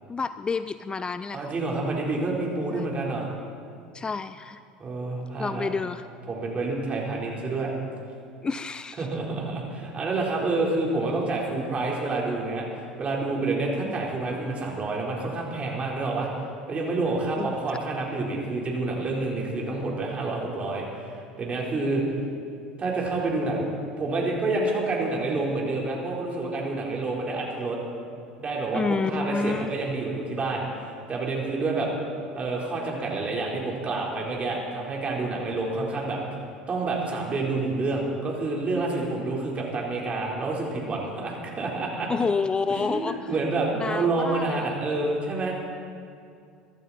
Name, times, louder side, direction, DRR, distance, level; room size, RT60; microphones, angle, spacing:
voice 1, 0.1-1.5 2.7-2.9 3.9-4.6 5.4-6.1 8.4-9.1 13.8-14.0 17.4-17.5 28.7-29.7 42.1-43.3 43.7-44.7, left 4 dB, 20° left, 13 dB, 0.4 m, -29 dB
voice 2, 1.3-3.3 4.8-5.7 6.3-7.7 9.0-16.3 16.7-22.0 22.8-23.7 24.0-27.8 28.4-31.9 32.3-36.2 36.7-42.1 42.7-45.5, right 3 dB, 30° right, -2 dB, 4.0 m, -28 dB
23.5 x 12.0 x 4.2 m, 2.4 s
hypercardioid pair, 75°, 4 cm